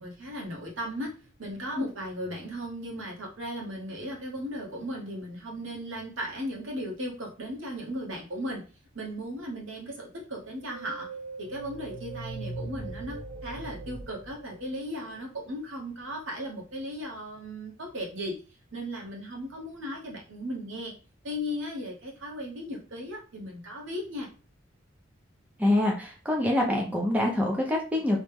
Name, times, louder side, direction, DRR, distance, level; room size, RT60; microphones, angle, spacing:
voice 1, 0.0-8.7 8.9-11.1 11.4-18.4 18.7-20.9 21.2-24.3, equal, 75° right, -1 dB, 1.1 m, -36 dB
sound 1, 10.6-15.2, right 2 dB, 15° left, 1.0 m, -40 dB
voice 2, 25.6-28.2, left 1 dB, 5° right, -1 dB, 0.5 m, -25 dB
3.0 x 2.2 x 3.4 m, 0.33 s
head